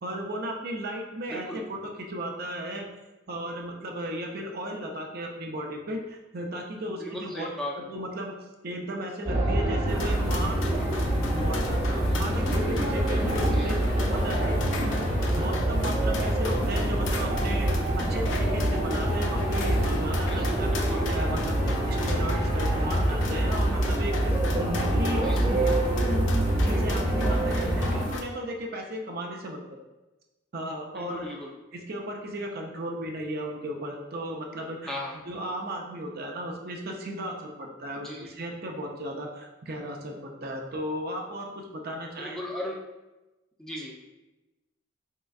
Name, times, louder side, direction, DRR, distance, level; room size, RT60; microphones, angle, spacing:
voice 1, 0.0-2.9 3.3-7.5 7.7-8.3 8.6-10.7 11.3-13.8 14.1-14.9 15.4-17.7 18.0-25.7 26.5-29.6 30.5-31.3 31.7-35.0 35.3-42.4, right 1 dB, 50° right, 1 dB, 0.6 m, -35 dB
voice 2, 1.3-1.6 6.9-7.9 13.5-13.7 20.3-21.1 25.2-25.5 30.9-31.5 34.9-35.2 37.9-38.3 42.2-42.8 43.6-43.9, left 1 dB, 5° left, -3 dB, 0.5 m, -37 dB
sound 1, 9.3-28.0, right 1 dB, 25° right, 1.0 m, -26 dB
sound 2, 9.9-28.2, left 3 dB, 75° left, 0.5 m, -36 dB
4.3 x 3.7 x 2.3 m, 1.1 s
head